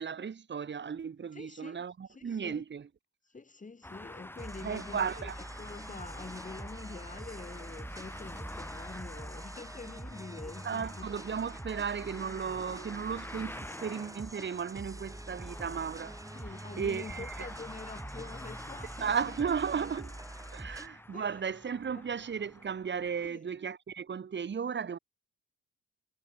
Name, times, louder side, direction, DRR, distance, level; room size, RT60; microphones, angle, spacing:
voice 1, 0.0-2.9 4.6-5.3 10.6-16.2 16.5-17.5 19.0-20.2 20.5-25.0, right 6 dB, 35° right, 1.7 m, -35 dB
voice 2, 1.3-1.8 2.1-2.6 3.3-5.3 5.6-11.1 16.3-19.1 19.4-19.5 19.8-19.9 20.6-21.4 21.9-22.0 23.2-23.4, left 4 dB, 25° left, 4.9 m, -46 dB
sound 1, 3.8-23.3, left 1 dB, 5° left, 3.3 m, -48 dB
sound 2, 4.4-20.9, right 1 dB, 10° right, 5.6 m, -45 dB
cardioid pair, 90°, 30 cm